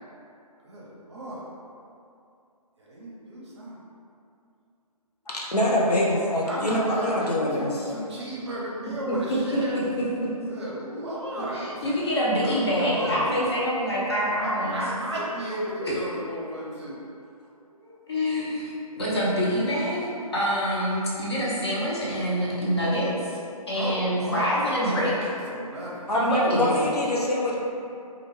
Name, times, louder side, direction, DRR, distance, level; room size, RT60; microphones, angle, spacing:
voice 1, 0.6-1.5 2.8-3.8 5.6-6.0 6.4-9.8 10.5-11.9 12.4-13.3 14.4-17.0 23.7-24.5 25.5-26.1, right 1 dB, 45° right, -5 dB, 0.6 m, -34 dB
voice 2, 5.3-7.7 26.1-27.5, left 1 dB, 85° left, -4 dB, 0.6 m, -24 dB
voice 3, 11.5-14.8 15.8-15.9 17.8-23.3 23.7-25.3 26.1-26.7, equal, 45° left, -7 dB, 0.7 m, -26 dB
2.4 x 2.2 x 3.1 m, 2.6 s
figure-of-eight pair, 145°, 20 cm